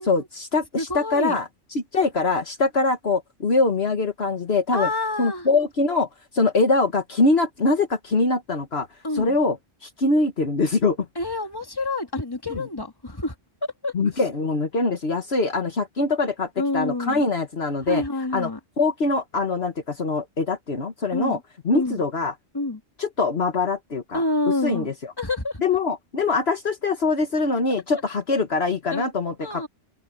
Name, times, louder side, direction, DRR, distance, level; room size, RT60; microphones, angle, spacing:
voice 1, 0.0-1.5 1.9-4.9 5.2-6.1 6.3-8.9 9.2-9.6 9.8-11.1 12.5-12.6 13.9-18.0 18.3-18.5 18.8-21.4 21.7-22.3 23.0-24.2 24.6-24.9 25.6-29.7, left 3 dB, 60° left, 1.7 m, -23 dB
voice 2, 0.8-1.4 4.7-5.5 9.0-9.4 11.2-13.4 13.6-14.2 16.6-17.3 17.8-18.6 21.1-21.4 21.7-22.0 22.5-22.8 24.1-24.9 25.2-25.6 27.9-28.0 28.9-29.1 29.4-29.7, left 2 dB, 20° left, 2.3 m, -28 dB
omnidirectional pair, 1.2 m